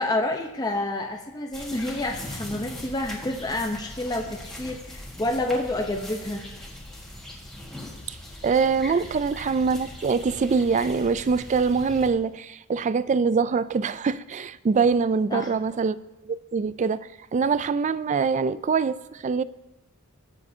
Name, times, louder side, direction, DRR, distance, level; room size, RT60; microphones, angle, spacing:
voice 1, 0.0-6.4 15.3-15.5, left 1 dB, 20° left, 0.7 m, -28 dB
sound 1, 1.5-12.1, left 1 dB, ahead, 1.7 m, -40 dB
voice 2, 8.4-16.0 16.2-17.0 17.3-19.4, right 5 dB, 35° right, 0.3 m, -24 dB
20.0 x 7.2 x 2.8 m
head